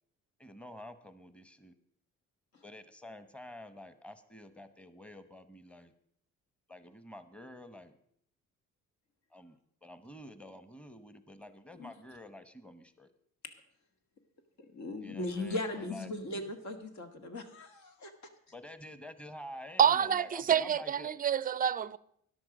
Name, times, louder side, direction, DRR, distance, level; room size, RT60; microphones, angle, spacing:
voice 1, 0.4-1.7 2.6-5.9 6.7-8.0 9.3-13.1 15.0-16.2 18.5-21.1, left 1 dB, 5° left, 1.0 m, -49 dB
voice 2, 14.6-18.1, left 2 dB, 70° left, 1.9 m, -38 dB
voice 3, 19.8-22.0, right 8 dB, 30° right, 0.4 m, -27 dB
13.5 x 10.5 x 5.1 m
cardioid pair, 90°, 30 cm